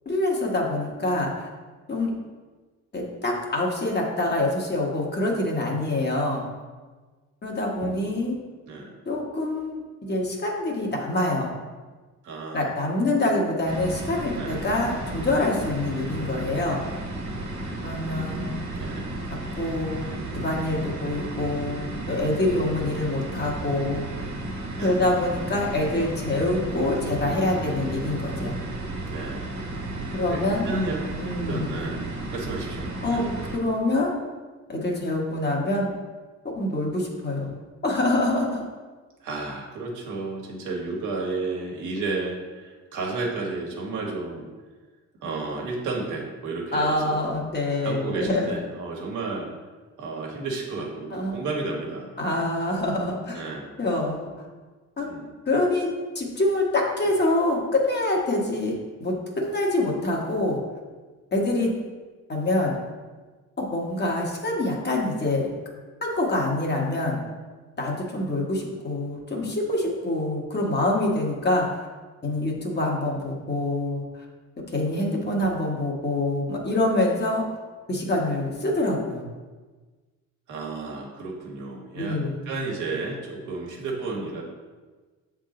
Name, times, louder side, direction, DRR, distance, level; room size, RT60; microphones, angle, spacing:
voice 1, 0.0-1.5 1.9-2.1 2.9-6.4 7.4-8.3 9.0-11.5 12.5-17.0 17.8-18.6 19.6-24.3 24.8-28.5 30.1-30.8 31.2-31.9 33.0-33.3 33.5-34.1 34.7-35.9 36.5-38.6 46.7-48.6 51.1-51.4 52.2-53.4 53.8-54.4 55.0-55.1 55.5-55.9 56.1-58.7 59.0-60.6 61.3-61.7 62.3-62.8 63.6-65.5 66.0-67.2 67.8-71.9 72.2-74.2 74.7-77.4 77.9-79.2 81.9-82.4, left 2 dB, 35° left, -1 dB, 1.4 m, -26 dB
voice 2, 7.8-8.3 8.7-9.0 12.2-12.7 14.3-14.6 18.0-19.1 24.8-25.0 25.4-25.5 27.5-27.9 29.0-29.5 30.3-31.0 31.5-33.2 39.2-44.5 45.2-47.4 47.8-49.5 50.0-52.5 53.3-53.7 55.0-55.3 80.5-84.4, right 3 dB, 80° right, -1 dB, 1.4 m, -32 dB
sound 1, 13.7-33.6, right 1 dB, 65° right, 1.7 m, -33 dB
7.1 x 3.7 x 3.8 m, 1.3 s
cardioid pair, 90°, 30 cm